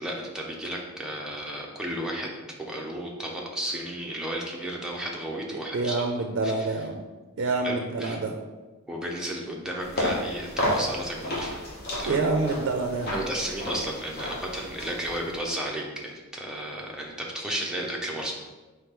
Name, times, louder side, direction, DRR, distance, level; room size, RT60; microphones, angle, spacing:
voice 1, 0.0-6.0 6.4-6.7 7.6-8.2 8.9-11.6 12.0-12.2 13.1-18.3, right 1 dB, 5° right, -2 dB, 0.6 m, -33 dB
voice 2, 5.5-7.0 7.4-8.3 12.0-13.3, right 3 dB, 60° right, 3 dB, 0.4 m, -27 dB
sound 1, 9.8-15.4, left 1 dB, 50° left, 1.1 m, -32 dB
4.4 x 3.2 x 3.6 m, 1.2 s
head